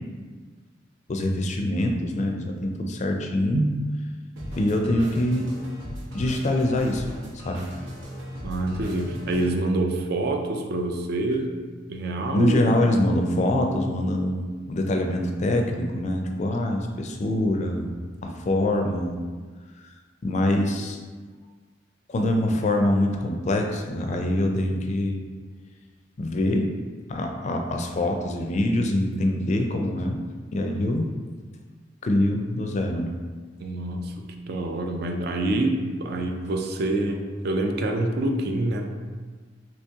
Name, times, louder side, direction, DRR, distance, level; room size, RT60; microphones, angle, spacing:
voice 1, 1.1-3.6 4.6-5.5 6.1-7.0 7.4-7.6 12.3-17.9 18.2-19.2 20.2-21.0 22.1-25.2 26.2-26.7 27.1-30.2 30.5-31.1 32.0-33.1, left 1 dB, 40° left, 3 dB, 0.4 m, -24 dB
sound 1, 4.4-9.5, equal, 90° right, 0.8 m, -37 dB
voice 2, 8.4-11.6 11.9-12.6 33.6-34.1 34.5-38.9, right 2 dB, 60° right, 3 dB, 0.4 m, -26 dB
3.0 x 2.9 x 3.4 m, 1.5 s
head